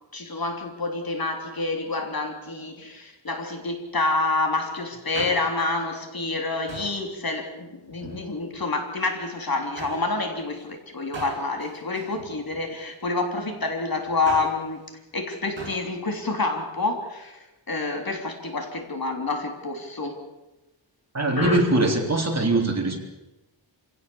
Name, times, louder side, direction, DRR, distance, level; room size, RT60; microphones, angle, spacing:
voice 1, 0.1-14.8 15.1-20.2 21.4-21.6, left 3 dB, 45° left, 4 dB, 3.5 m, -28 dB
Male speech man speaking, 4.9-5.7 6.7-7.1 7.9-8.7 9.8-10.1 11.1-12.8 14.0-14.7 15.6-15.9 16.2-16.3, right 2 dB, 65° right, 7.9 m, -39 dB
voice 2, 21.1-23.0, right 2 dB, 35° right, 1 dB, 3.9 m, -22 dB
27.5 x 17.0 x 7.2 m, 1.0 s
wide cardioid pair, 110°, 47 cm